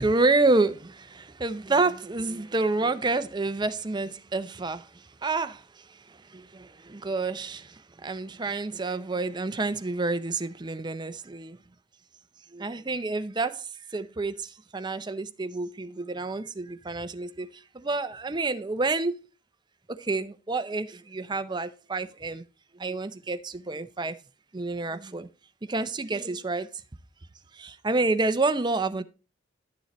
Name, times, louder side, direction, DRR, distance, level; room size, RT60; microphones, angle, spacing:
voice 1, 0.0-11.6 12.5-19.2 19.9-22.4 22.7-24.2 24.5-25.3 25.6-26.7 27.5-29.0, right 3 dB, 20° right, 0.5 m, -29 dB
11.5 x 6.8 x 3.0 m
head